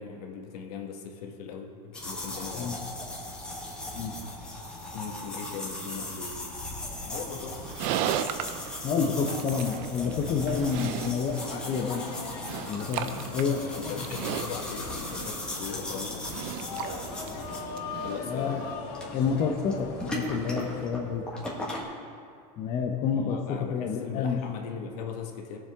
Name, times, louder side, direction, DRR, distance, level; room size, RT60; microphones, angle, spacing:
voice 1, 0.0-2.8 4.9-6.4 7.0-7.7 13.6-16.3 18.0-18.6 23.1-25.6, left 6 dB, 65° left, 2 dB, 1.6 m, -39 dB
sound 1, 1.9-21.8, left 1 dB, 5° left, 1.7 m, -38 dB
Livestock farm animals working animals, 7.5-18.7, right 10 dB, 40° right, 0.5 m, -37 dB
voice 2, 8.8-12.0 12.6-13.7 14.0-14.1 18.3-18.6 19.1-21.2 22.6-24.4, left 6 dB, 25° left, 1 dB, 0.8 m, -29 dB
sound 2, 11.4-20.9, left 5 dB, 45° left, 1.3 m, -40 dB
19.0 x 7.3 x 3.6 m, 2.3 s
supercardioid pair, 155°, 21 cm